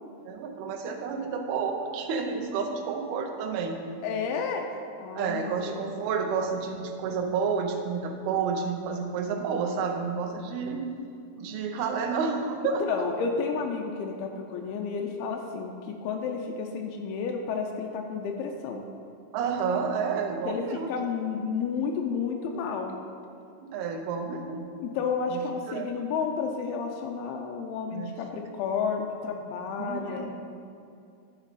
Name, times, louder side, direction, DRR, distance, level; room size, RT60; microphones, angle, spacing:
voice 1, 0.2-3.8 5.2-10.9 11.4-13.0 19.3-20.9 23.7-24.6 25.3-25.4 25.7-25.9 27.9-28.1 29.8-30.3, right 5 dB, 85° right, 4 dB, 2.7 m, -30 dB
voice 2, 4.0-4.7 5.0-5.9 12.9-18.8 20.5-23.0 24.8-30.3, left 5 dB, 85° left, 2 dB, 2.5 m, -31 dB
11.0 x 4.4 x 4.1 m, 2.5 s
omnidirectional pair, 4.4 m